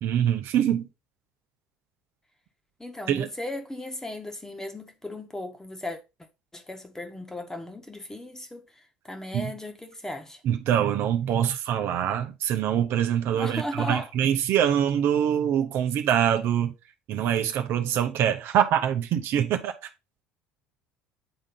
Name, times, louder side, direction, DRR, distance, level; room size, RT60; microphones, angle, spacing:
voice 1, 0.0-0.8 3.1-3.3 9.3-9.5 10.4-16.7 17.1-19.7, right 9 dB, 60° right, 0.8 m, -24 dB
voice 2, 2.8-6.0 6.5-10.4 13.3-14.1, left 1 dB, 10° left, 1.4 m, -36 dB
8.8 x 3.7 x 3.8 m
hypercardioid pair, 70°, 5 cm